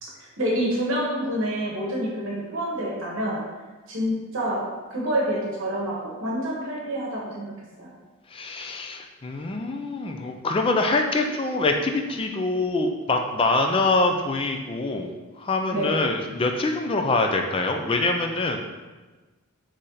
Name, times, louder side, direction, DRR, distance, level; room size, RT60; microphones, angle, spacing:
voice 1, 0.0-3.4 3.9-7.5 7.8-7.9 15.7-16.0, equal, 60° right, -4 dB, 1.0 m, -27 dB
voice 2, 8.3-18.6, left 2 dB, 25° left, 4 dB, 0.3 m, -25 dB
4.1 x 3.2 x 3.8 m, 1.2 s
head